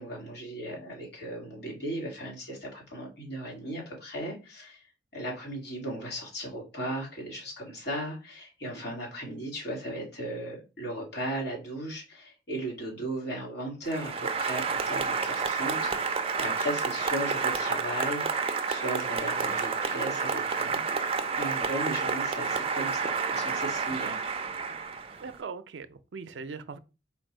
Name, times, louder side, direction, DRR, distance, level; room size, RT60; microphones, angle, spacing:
voice 1, 0.0-20.8 21.4-24.2, right 1 dB, 65° left, 2.1 m, -36 dB
Applause, 13.9-25.4, right 5 dB, 35° right, 0.5 m, -30 dB
voice 2, 25.2-26.8, right 5 dB, 85° right, 0.5 m, -41 dB
4.4 x 2.7 x 4.3 m
head